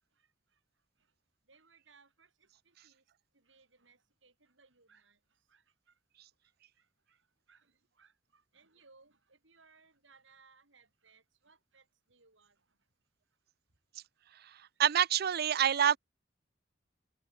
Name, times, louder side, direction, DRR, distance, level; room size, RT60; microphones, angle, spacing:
voice 1, 1.5-2.3 2.8-3.0 3.5-5.2 5.5-5.6 7.5-7.6 8.0-11.8 12.1-12.5 15.1-15.5, right 4 dB, 80° right, 5.8 m, -64 dB
voice 2, 14.8-16.0, right 9 dB, 55° right, 0.5 m, -26 dB
head